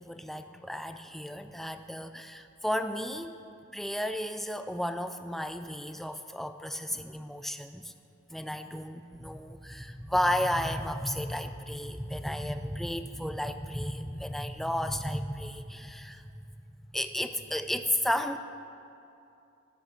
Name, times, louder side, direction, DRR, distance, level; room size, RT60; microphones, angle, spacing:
voice 1, 0.0-3.4 3.7-7.9 8.3-16.3 16.9-18.4, equal, ahead, 9 dB, 0.3 m, -33 dB
13.0 x 6.1 x 6.9 m, 2.7 s
head